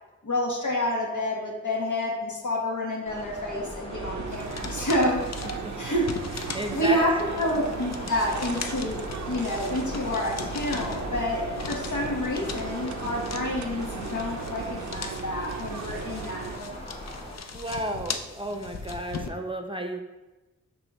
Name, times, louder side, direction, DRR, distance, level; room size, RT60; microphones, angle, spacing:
voice 1, 0.2-5.4 5.8-6.1 6.7-16.8, left 1 dB, 75° left, -2 dB, 1.4 m, -29 dB
sound 1, 3.1-17.4, equal, 20° left, 1.2 m, -39 dB
sound 2, 3.9-16.6, right 7 dB, 70° right, 0.5 m, -37 dB
sound 3, 4.3-19.3, left 5 dB, 60° left, 0.6 m, -40 dB
voice 2, 5.6-6.0 6.5-7.0 17.5-20.0, right 1 dB, 15° right, 4 dB, 0.7 m, -33 dB
9.5 x 3.5 x 3.1 m, 1.1 s
cardioid pair, 40°, 30 cm